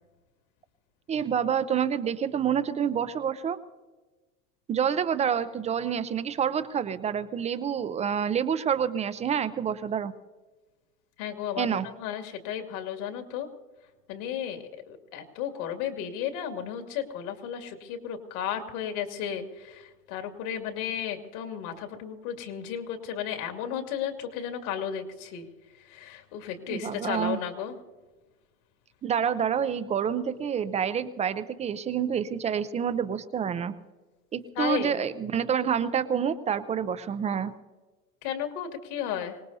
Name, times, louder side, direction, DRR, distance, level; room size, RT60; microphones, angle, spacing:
voice 1, 1.1-3.6 4.7-10.1 11.6-11.9 26.7-27.4 29.0-33.7 34.3-37.5, right 8 dB, 15° right, 12 dB, 0.4 m, -28 dB
voice 2, 11.2-13.5 14.1-25.5 25.8-27.8 34.6-35.0 38.2-39.4, left 9 dB, 60° left, 5 dB, 2.5 m, -34 dB
25.0 x 19.0 x 2.7 m, 1.2 s
hypercardioid pair, 105°, 48 cm